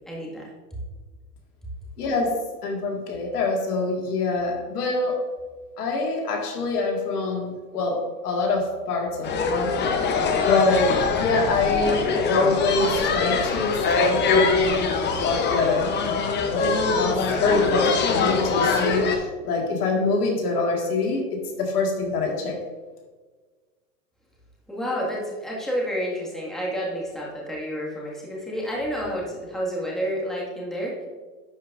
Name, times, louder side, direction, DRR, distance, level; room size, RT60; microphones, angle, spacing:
voice 1, 0.1-0.5 24.7-30.9, equal, ahead, -4 dB, 1.8 m, -29 dB
voice 2, 2.0-5.3 5.8-10.2 10.4-14.8 15.1-15.9 16.5-16.7 17.0-22.5, left 3 dB, 80° left, 0 dB, 1.9 m, -25 dB
sound 1, 9.2-19.2, left 4 dB, 25° left, 0.7 m, -23 dB
11.0 x 5.1 x 2.5 m, 1.4 s
hypercardioid pair, 120°, 46 cm